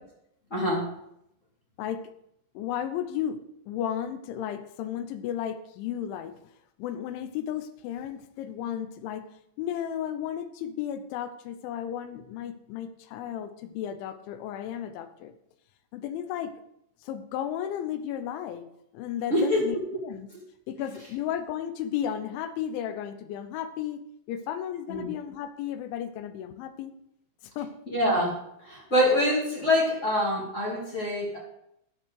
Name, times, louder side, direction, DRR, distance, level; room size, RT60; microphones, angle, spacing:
voice 1, 0.5-0.9 19.3-19.6 24.9-25.1 27.9-31.4, left 1 dB, 25° left, -3 dB, 2.0 m, -25 dB
voice 2, 2.5-6.4 6.8-9.3 9.6-15.3 15.9-16.5 17.0-19.8 20.0-20.3 20.7-24.0 24.3-26.9 27.6-27.7, left 10 dB, 85° left, 11 dB, 3.2 m, -34 dB
10.5 x 6.8 x 6.3 m, 0.78 s
omnidirectional pair, 5.3 m